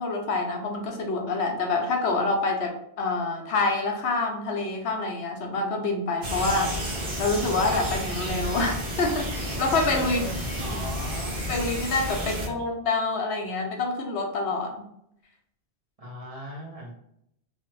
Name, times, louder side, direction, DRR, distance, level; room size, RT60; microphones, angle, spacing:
voice 1, 0.0-6.7 7.2-10.2 10.7-10.8 11.5-14.7, left 3 dB, 80° left, 2 dB, 0.9 m, -27 dB
sound 1, 6.2-12.5, equal, 55° right, 1.0 m, -31 dB
voice 2, 10.1-11.4 12.2-12.6 16.0-16.9, right 1 dB, 40° right, -3 dB, 0.6 m, -39 dB
3.1 x 2.0 x 3.0 m, 0.75 s
omnidirectional pair, 1.1 m